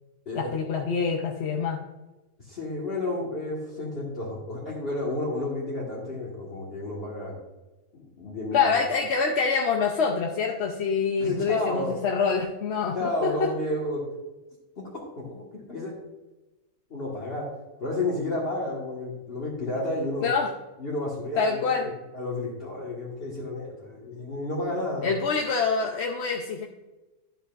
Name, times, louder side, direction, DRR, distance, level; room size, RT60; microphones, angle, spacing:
voice 1, 0.3-1.8 8.5-13.5 20.2-20.5 21.4-21.9 25.0-26.6, left 5 dB, 55° left, 1 dB, 0.8 m, -26 dB
voice 2, 2.5-7.3 7.9-8.8 11.2-12.0 12.9-14.0 14.8-14.9 15.2-15.4 15.7-15.9 16.9-17.5 17.8-20.3 20.8-21.7 22.1-25.1, left 2 dB, 40° left, -5 dB, 1.8 m, -31 dB
11.5 x 7.6 x 2.5 m, 1.1 s
omnidirectional pair, 1.6 m